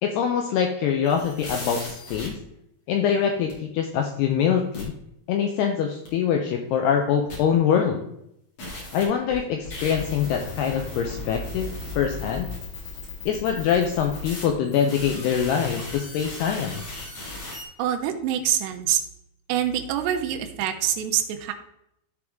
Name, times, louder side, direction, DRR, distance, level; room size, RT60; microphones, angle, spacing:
voice 1, 0.0-2.4 2.9-4.9 5.3-8.0 8.9-12.5 13.3-16.8, left 7 dB, 80° left, 3 dB, 2.5 m, -24 dB
sound 1, 1.0-2.3 3.5-3.6 4.7-4.8 6.0-6.1 7.3-7.4 8.6-17.6, left 2 dB, 40° left, 3.3 m, -36 dB
voice 2, 17.8-19.0 19.5-21.5, right 10 dB, 75° right, 4 dB, 2.6 m, -25 dB
13.0 x 4.8 x 3.6 m, 0.77 s
omnidirectional pair, 5.3 m